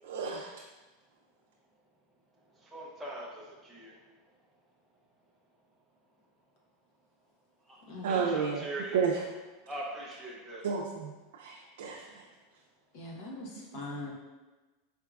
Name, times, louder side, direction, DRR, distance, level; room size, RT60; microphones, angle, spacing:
voice 1, 0.0-0.5 8.0-8.7 8.9-9.2 10.6-12.2 13.5-13.6, right 6 dB, 90° right, -1 dB, 0.4 m, -32 dB
voice 2, 2.7-3.3 3.6-3.9 8.1-9.0 9.7-10.6, right 2 dB, 5° right, -5 dB, 0.5 m, -40 dB
voice 3, 12.9-13.5 13.7-14.1, left 2 dB, 55° left, -2 dB, 1.0 m, -40 dB
4.6 x 3.5 x 2.3 m, 1.2 s
supercardioid pair, 145°, 0 cm